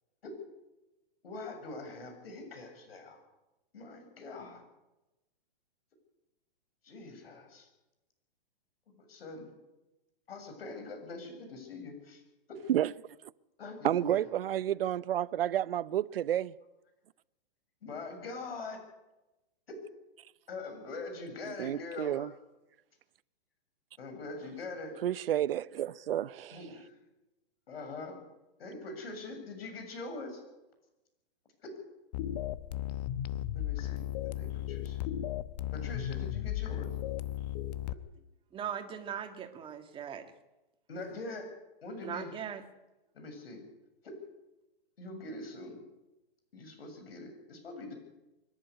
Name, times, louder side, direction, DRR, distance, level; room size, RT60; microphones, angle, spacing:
voice 1, 1.2-3.2 3.7-4.7 6.8-7.7 9.0-9.5 10.3-12.2 12.5-12.6 13.6-14.2 17.8-18.8 19.7-19.8 20.5-22.3 24.0-25.0 26.5-26.9 27.7-28.2 28.6-30.4 31.6-31.8 33.5-34.1 34.4-35.1 35.7-36.9 40.9-41.5 41.8-42.3 43.1-43.6 44.0-44.2 45.0-45.8 46.5-47.9, left 3 dB, 75° left, 7.4 m, -43 dB
voice 2, 13.8-16.5 21.6-22.3 25.0-26.6, right 11 dB, 70° right, 0.8 m, -30 dB
sound 1, 32.1-37.9, left 12 dB, 45° left, 0.9 m, -35 dB
voice 3, 38.5-40.3 42.0-42.7, right 8 dB, 15° right, 1.9 m, -39 dB
24.5 x 11.0 x 9.8 m
hypercardioid pair, 140°, 30 cm